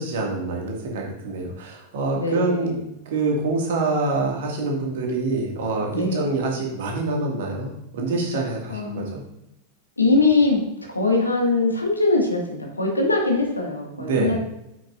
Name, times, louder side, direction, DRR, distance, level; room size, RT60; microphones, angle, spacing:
voice 1, 0.0-2.7 3.1-9.2 14.0-14.3, right 3 dB, 55° right, 0 dB, 1.8 m, -26 dB
voice 2, 2.1-2.8 5.9-6.3 8.7-9.1 10.0-10.6 10.9-14.4, left 3 dB, 80° left, 0 dB, 1.6 m, -22 dB
8.4 x 6.2 x 2.5 m, 0.83 s
figure-of-eight pair, 90°, 0 cm